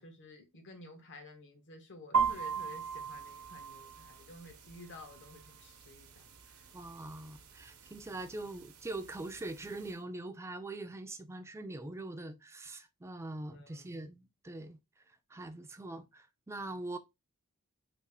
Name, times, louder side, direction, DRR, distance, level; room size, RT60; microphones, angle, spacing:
voice 1, 0.0-6.6 13.5-14.0, left 2 dB, 55° left, 0.9 m, -52 dB
sound 1, 2.1-10.0, right 6 dB, 75° right, 0.7 m, -39 dB
voice 2, 6.7-14.8 15.3-17.0, right 2 dB, 10° right, 0.3 m, -43 dB
3.4 x 2.4 x 3.4 m
head